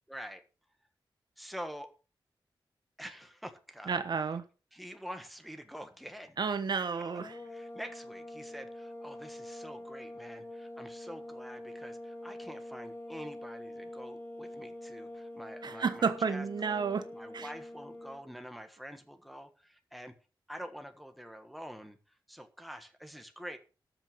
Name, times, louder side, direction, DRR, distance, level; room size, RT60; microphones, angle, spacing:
voice 1, 0.1-0.4 1.4-1.9 3.0-4.0 4.7-6.4 7.0-7.1 7.4-20.1 20.5-23.6, equal, ahead, 1.4 m, -46 dB
voice 2, 3.9-4.4 6.4-7.4 15.6-17.0 17.3-17.5, right 5 dB, 60° right, 1.2 m, -31 dB
sound 1, 7.2-18.2, left 1 dB, 25° left, 1.8 m, -45 dB
13.0 x 6.3 x 6.8 m
wide cardioid pair, 155°, 8 cm